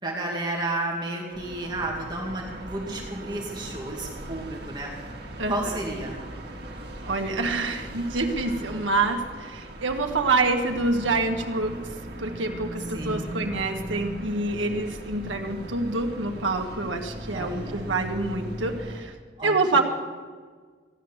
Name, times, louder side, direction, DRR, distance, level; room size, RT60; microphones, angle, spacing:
voice 1, 0.0-4.9 5.5-6.1 12.9-13.3 17.3-17.8 19.4-19.8, right 2 dB, 25° right, -1 dB, 2.1 m, -32 dB
sound 1, 1.3-19.0, right 1 dB, 55° right, 2.1 m, -39 dB
voice 2, 5.4-5.8 7.0-19.1 19.4-19.8, right 3 dB, 85° right, 3 dB, 1.7 m, -27 dB
16.0 x 11.0 x 7.2 m, 1.5 s
head